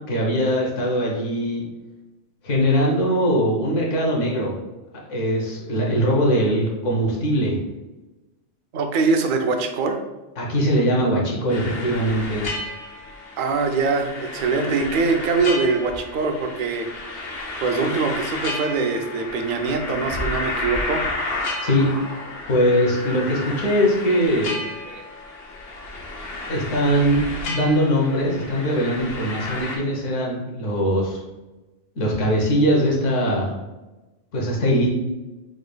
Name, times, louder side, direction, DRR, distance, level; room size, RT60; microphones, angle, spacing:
voice 1, 0.1-1.6 2.4-4.6 5.1-7.6 10.4-12.5 21.6-21.9 22.5-24.6 26.5-27.2 27.5-31.2 32.0-33.5 34.3-34.9, equal, 80° left, -2 dB, 1.3 m, -21 dB
voice 2, 8.7-10.0 13.4-17.1 17.6-21.1 24.9-25.0, right 4 dB, 60° right, 5 dB, 0.6 m, -23 dB
sound 1, 11.5-29.8, left 2 dB, 60° left, 0.9 m, -32 dB
4.9 x 3.9 x 2.2 m, 1.1 s
omnidirectional pair, 1.2 m